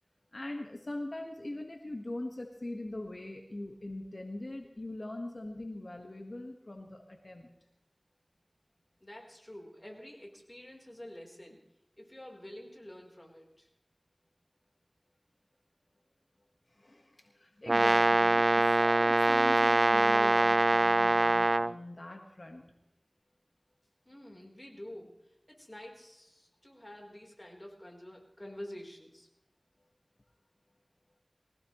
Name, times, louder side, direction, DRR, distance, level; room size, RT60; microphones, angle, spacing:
voice 1, 0.3-7.5 16.8-22.7, left 1 dB, 55° left, 2 dB, 1.5 m, -42 dB
voice 2, 9.0-11.6 12.0-13.7 24.1-25.1 25.5-29.3, left 1 dB, 30° left, 0 dB, 3.9 m, -48 dB
Brass instrument, 17.7-21.7, right 2 dB, 60° right, 0.5 m, -24 dB
23.0 x 16.5 x 3.1 m, 0.86 s
wide cardioid pair, 40°, 0 cm